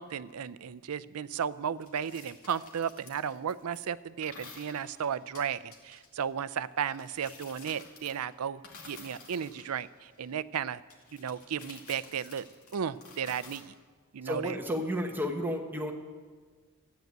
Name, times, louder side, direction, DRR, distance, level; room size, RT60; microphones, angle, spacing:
voice 1, 0.0-10.8 11.1-12.4 12.7-13.7 14.1-14.6, right 7 dB, 80° right, 16 dB, 0.5 m, -34 dB
sound 1, 1.8-3.8 4.2-6.2 6.9-8.3 8.6-10.3 10.9-13.6, left 4 dB, 80° left, 2.3 m, -51 dB
voice 2, 14.2-15.9, equal, 10° right, 3 dB, 1.2 m, -32 dB
13.5 x 9.3 x 9.2 m, 1.5 s
head